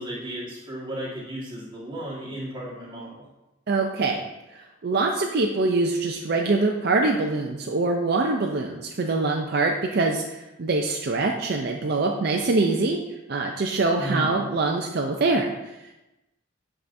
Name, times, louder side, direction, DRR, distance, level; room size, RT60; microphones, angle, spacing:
voice 1, 0.0-3.2 14.0-14.4, right 1 dB, 25° right, -6 dB, 1.6 m, -34 dB
voice 2, 3.7-4.2 4.5-16.0, right 3 dB, 50° right, 1 dB, 0.4 m, -24 dB
8.2 x 4.9 x 2.6 m, 0.99 s
head